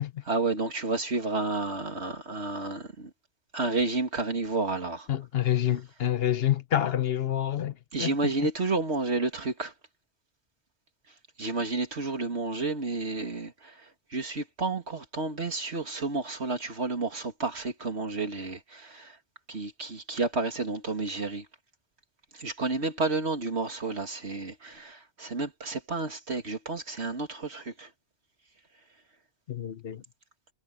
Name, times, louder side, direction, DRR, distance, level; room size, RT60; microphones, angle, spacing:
voice 1, 0.3-3.1 3.5-5.1 7.9-9.7 11.4-19.2 19.5-21.5 22.3-27.9, right 3 dB, 75° right, 2.7 m, -31 dB
voice 2, 5.1-7.7 8.0-8.1 29.5-30.0, left 11 dB, 65° left, 1.0 m, -27 dB
omnidirectional pair, 1.1 m